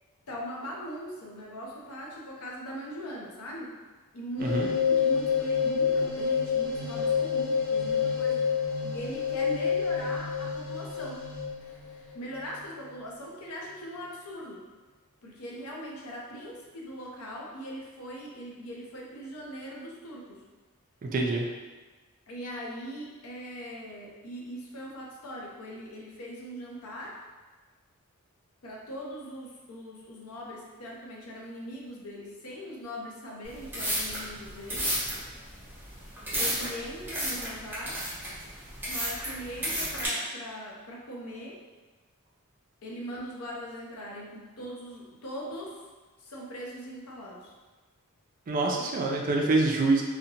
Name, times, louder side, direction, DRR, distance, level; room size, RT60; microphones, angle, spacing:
voice 1, 0.3-3.7 4.1-8.4 8.8-11.2 11.6-14.6 15.2-20.4 22.3-27.2 28.6-34.9 36.4-38.0 38.9-41.6 42.8-45.9 46.2-47.5, equal, 75° left, -2 dB, 0.6 m, -41 dB
sound 1, 4.4-12.9, left 6 dB, 25° left, 0.7 m, -28 dB
voice 2, 21.0-21.5 48.5-50.0, right 2 dB, 40° right, 0 dB, 0.3 m, -25 dB
sound 2, 33.4-40.1, right 1 dB, 10° right, 0.8 m, -32 dB
2.6 x 2.1 x 2.7 m, 1.3 s
head